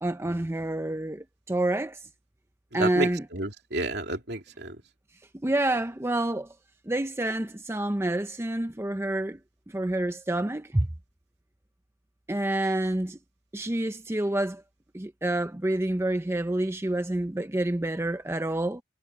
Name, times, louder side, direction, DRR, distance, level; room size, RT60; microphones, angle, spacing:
voice 1, 0.0-2.0 2.7-3.2 5.4-6.5 6.9-9.4 9.7-10.9 12.3-13.2 13.5-14.6 14.9-18.8, right 1 dB, 15° right, 0.6 m, -28 dB
voice 2, 2.7-4.8, right 2 dB, 65° right, 3.1 m, -31 dB
head